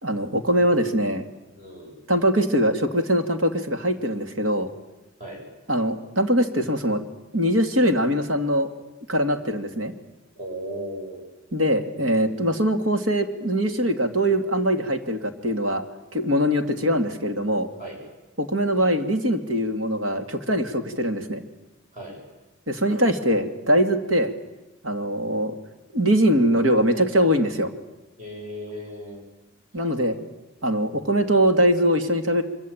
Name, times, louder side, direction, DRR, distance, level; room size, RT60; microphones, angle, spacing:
voice 1, 0.0-1.2 2.1-4.7 5.7-7.0 7.3-8.7 9.1-9.9 11.5-15.8 16.1-17.7 18.4-21.4 22.7-24.3 24.8-25.5 25.9-27.7 29.7-30.2 30.6-32.4, equal, 80° right, 6 dB, 2.5 m, -22 dB
voice 2, 1.6-1.9 5.2-5.4 10.4-11.3 17.8-18.0 21.9-22.2 28.2-29.2, equal, 35° right, -1 dB, 7.9 m, -36 dB
25.0 x 24.5 x 8.9 m, 1.0 s
head